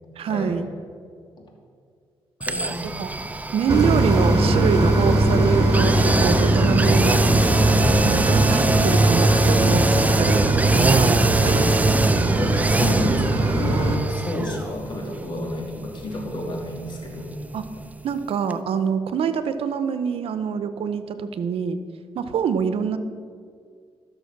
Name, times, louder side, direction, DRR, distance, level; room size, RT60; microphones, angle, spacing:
voice 1, 0.2-0.7 2.8-3.2 3.5-7.2 8.0-10.5 10.7-11.7 17.5-17.7 18.0-21.8 22.2-23.0, right 7 dB, 75° right, 11 dB, 0.7 m, -25 dB
voice 2, 2.4-2.8 12.4-17.3, left 1 dB, 55° left, 0 dB, 2.7 m, -30 dB
sound 1, 2.4-18.2 18.5-18.6, right 2 dB, 15° right, 0.5 m, -25 dB
sound 2, 3.7-14.0, right 2 dB, 40° right, 1.5 m, -20 dB
13.5 x 6.6 x 6.0 m, 2.2 s
cardioid pair, 85°, 10 cm